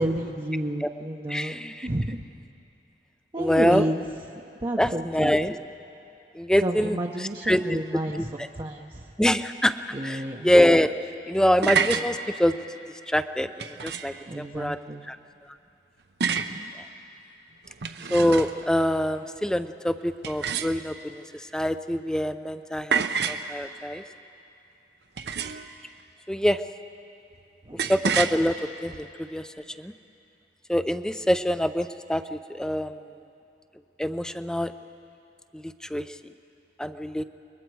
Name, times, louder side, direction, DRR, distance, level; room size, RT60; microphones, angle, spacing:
voice 1, 0.0-1.5 1.8-2.2 3.3-4.1 4.6-5.5 6.6-8.9 9.9-10.5 14.3-15.1 16.3-16.7 27.7-27.9, right 1 dB, 25° right, -1 dB, 0.8 m, -30 dB
voice 2, 1.3-1.9 3.4-3.8 4.8-5.6 6.4-8.5 9.2-9.8 10.0-10.9 11.3-12.5 13.1-13.5 13.8-14.8 15.1-15.2 18.1-21.2 21.5-24.0 26.3-26.6 27.9-28.5 28.8-29.4 29.8-29.9 30.7-32.9 34.0-34.7 35.9-36.0 36.8-37.2, equal, 5° left, 11 dB, 0.5 m, -24 dB
sound 1, 11.6-12.1 13.6-14.2 16.2-16.6 17.7-18.7 20.2-21.1 22.9-23.5 25.2-25.7 27.8-28.4, right 6 dB, 65° right, 0.8 m, -28 dB
29.5 x 21.5 x 4.7 m, 2.7 s
head